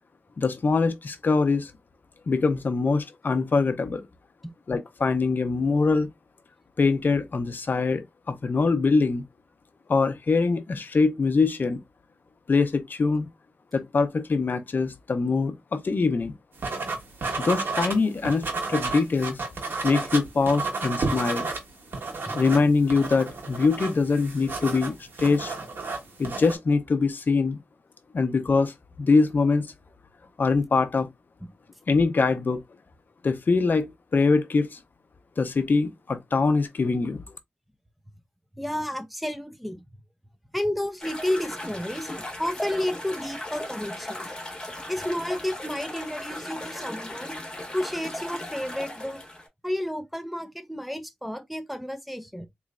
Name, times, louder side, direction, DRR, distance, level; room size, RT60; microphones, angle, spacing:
voice 1, 0.4-1.7 2.3-4.0 4.7-6.1 6.8-9.2 9.9-11.8 12.5-13.3 13.7-16.3 17.4-19.4 19.8-21.5 22.3-25.5 26.2-27.6 28.1-29.7 30.4-31.1 31.9-32.6 33.2-34.8 35.4-37.2, left 4 dB, 60° left, 0.6 m, -23 dB
sound 1, 16.6-18.0 18.3-21.6 21.9-26.6, right 3 dB, 80° right, 1.5 m, -31 dB
voice 2, 38.6-39.8 40.5-44.3 44.9-47.4 47.7-49.2 49.6-52.5, left 1 dB, ahead, 0.6 m, -31 dB
sound 2, 41.0-49.5, left 1 dB, 20° left, 1.4 m, -37 dB
4.1 x 3.1 x 2.4 m
wide cardioid pair, 85°, 4 cm